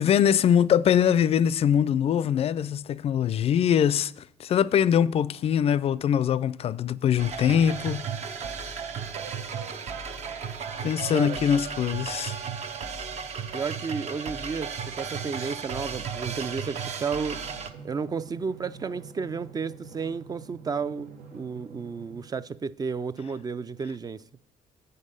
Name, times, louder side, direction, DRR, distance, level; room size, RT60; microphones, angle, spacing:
voice 1, 0.0-4.1 4.4-8.1 10.8-12.3, left 9 dB, 50° left, 0.4 m, -23 dB
sound 1, 7.2-17.7, right 6 dB, 55° right, 0.9 m, -34 dB
voice 2, 13.5-17.4 17.8-24.2, right 5 dB, 30° right, 0.3 m, -32 dB
Drum, 17.3-22.3, right 5 dB, 90° right, 1.2 m, -47 dB
7.7 x 5.4 x 6.5 m
cardioid pair, 95°, 13 cm